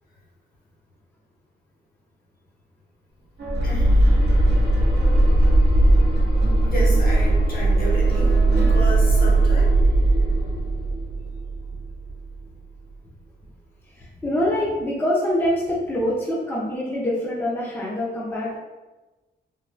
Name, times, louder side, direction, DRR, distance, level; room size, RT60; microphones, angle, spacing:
sound 1, 3.4-12.1 13.1-13.4, right 2 dB, 65° right, 0.7 m, -38 dB
sound 2, 3.5-12.4, right 2 dB, 25° right, 0.8 m, -18 dB
voice 1, 3.6-4.0 6.6-9.7, equal, 55° left, -4 dB, 0.8 m, -31 dB
voice 2, 14.0-18.6, left 1 dB, 10° left, -6 dB, 0.5 m, -25 dB
3.2 x 2.2 x 2.4 m, 1.1 s
wide cardioid pair, 135°, 19 cm